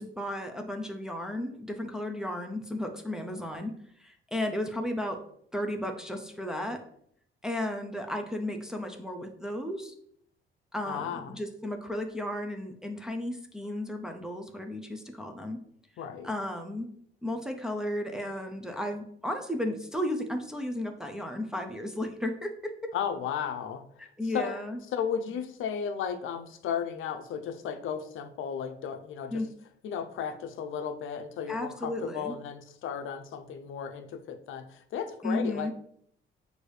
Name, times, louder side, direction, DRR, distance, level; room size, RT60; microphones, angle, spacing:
voice 1, 0.0-3.7 4.0-5.2 5.5-6.8 7.4-9.9 10.7-15.6 16.2-16.9 17.2-22.7 24.2-24.8 29.3-29.5 31.5-32.4 35.2-35.7, left 1 dB, 5° right, 4 dB, 0.4 m, -34 dB
voice 2, 10.9-11.3 16.0-16.3 22.9-23.8 24.3-24.5 24.9-29.4 29.8-35.7, left 7 dB, 75° left, 8 dB, 0.5 m, -34 dB
6.3 x 2.6 x 3.2 m, 0.67 s
cardioid pair, 160°, 21 cm